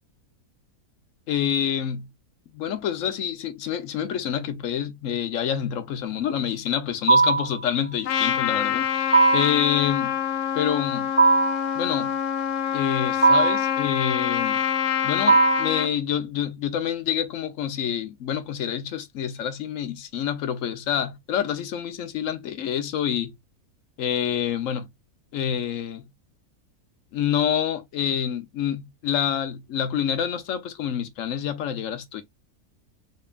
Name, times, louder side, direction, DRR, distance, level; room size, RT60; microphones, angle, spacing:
voice 1, 1.3-2.1 2.5-10.2 10.5-11.1 11.7-12.2 12.7-14.6 15.0-23.4 24.0-24.9 25.3-26.1 27.1-32.2, left 9 dB, 65° left, 1.1 m, -27 dB
sound 1, 7.1-7.6 9.1-9.6 11.2-11.7 13.2-13.7 15.3-15.8, right 4 dB, 25° right, 1.0 m, -18 dB
Trumpet, 8.0-15.9, left 9 dB, 80° left, 1.1 m, -26 dB
3.7 x 3.5 x 2.4 m
omnidirectional pair, 1.6 m